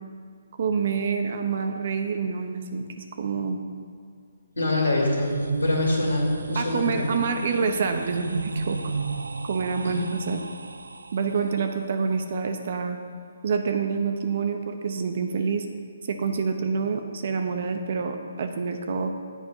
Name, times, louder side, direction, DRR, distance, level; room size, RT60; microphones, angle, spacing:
voice 1, 0.6-3.6 6.5-8.9 9.4-10.4 11.1-13.0 13.4-15.6 16.1-19.1, right 5 dB, 55° right, 5 dB, 0.8 m, -27 dB
voice 2, 4.6-5.3 5.6-7.1 9.8-10.0, left 2 dB, 90° left, -1 dB, 2.7 m, -25 dB
sound 1, 4.6-11.6, right 3 dB, 85° right, 0.4 m, -31 dB
8.2 x 5.2 x 7.5 m, 2.1 s
hypercardioid pair, 145°, 0 cm